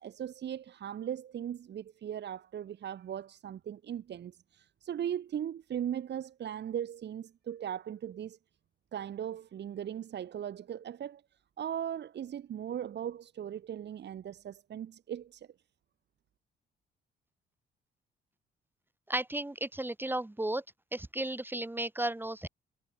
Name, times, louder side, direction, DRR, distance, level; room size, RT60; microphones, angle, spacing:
voice 1, 0.0-8.4 8.9-11.2 11.6-15.5, right 9 dB, 60° right, 2.0 m, -38 dB
voice 2, 19.1-20.6 20.9-22.5, right 1 dB, 10° right, 3.9 m, -34 dB
cardioid pair, 90°, 20 cm